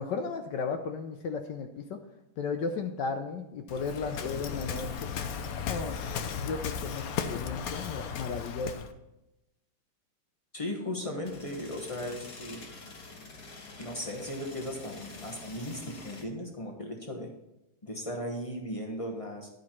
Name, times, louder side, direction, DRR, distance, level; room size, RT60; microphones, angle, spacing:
voice 1, 0.0-2.0 2.4-4.9 5.7-6.0 6.3-8.8, left 5 dB, 70° left, 6 dB, 1.1 m, -34 dB
Waves surf, 3.7-8.9, left 6 dB, 85° left, 0.7 m, -35 dB
voice 2, 10.5-12.6 13.8-17.3 17.8-19.5, left 1 dB, 30° left, 1 dB, 0.6 m, -37 dB
sound 1, 11.2-16.2, left 3 dB, 50° left, 1.9 m, -47 dB
11.5 x 5.3 x 4.4 m, 0.93 s
omnidirectional pair, 2.4 m